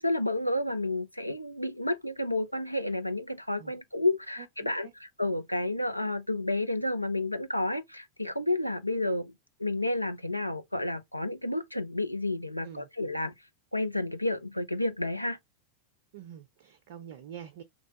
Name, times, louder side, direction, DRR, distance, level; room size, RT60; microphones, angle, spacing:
voice 1, 0.0-9.3 9.6-13.3 13.7-15.4, left 2 dB, 90° left, 0.4 m, -31 dB
voice 2, 4.4-4.9 12.6-12.9 16.1-17.6, right 9 dB, 55° right, 0.4 m, -46 dB
3.1 x 2.2 x 2.8 m
figure-of-eight pair, 90°, 0 cm